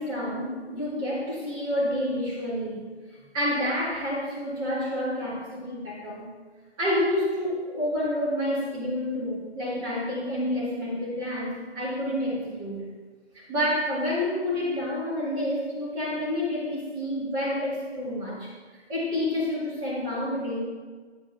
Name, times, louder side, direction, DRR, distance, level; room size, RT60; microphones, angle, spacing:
voice 1, 0.0-2.9 3.1-6.3 6.8-12.9 13.3-20.6, left 1 dB, 15° right, -8 dB, 2.0 m, -29 dB
10.0 x 5.1 x 3.5 m, 1.4 s
figure-of-eight pair, 145°, 33 cm